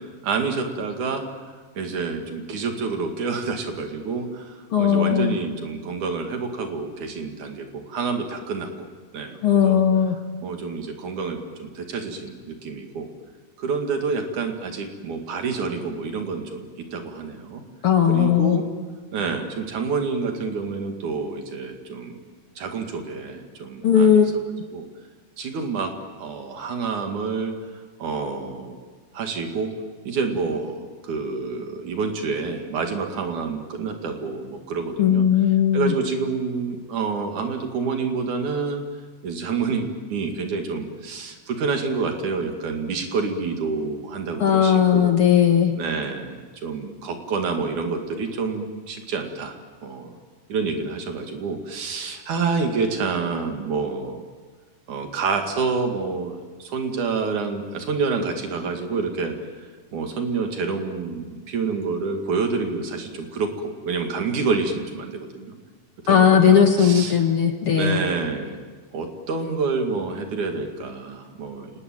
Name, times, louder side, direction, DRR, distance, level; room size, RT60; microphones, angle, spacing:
voice 1, 0.2-1.2 1.8-8.9 9.1-9.8 10.4-13.1 13.6-17.6 18.1-18.6 19.1-22.1 22.6-24.2 24.7-24.9 25.4-25.9 26.2-27.5 28.0-28.8 29.1-29.7 30.1-35.2 35.7-38.8 39.2-45.2 45.8-49.6 49.8-50.2 50.5-54.2 54.9-65.6 66.0-67.2 67.7-68.6 68.9-71.7, right 4 dB, 65° right, 4 dB, 3.6 m, -28 dB
voice 2, 4.7-5.4 9.4-10.2 17.8-18.6 23.8-24.3 35.0-35.9 44.4-45.7 66.1-68.0, left 8 dB, 50° left, 4 dB, 1.9 m, -17 dB
29.0 x 19.5 x 9.2 m, 1.5 s
omnidirectional pair, 3.8 m